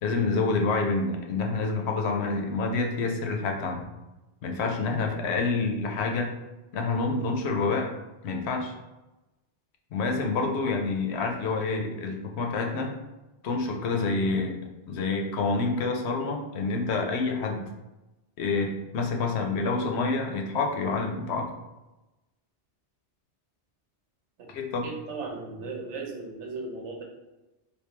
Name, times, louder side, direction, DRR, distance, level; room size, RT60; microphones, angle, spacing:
voice 1, 0.0-3.8 4.4-6.3 6.7-7.9 8.2-8.7 9.9-12.9 13.4-14.6 14.9-17.6 18.4-21.5 24.5-24.8, left 3 dB, 70° left, 2 dB, 0.8 m, -27 dB
voice 2, 24.8-27.0, right 3 dB, 85° right, 1 dB, 1.0 m, -37 dB
3.4 x 2.6 x 3.1 m, 1.0 s
omnidirectional pair, 1.2 m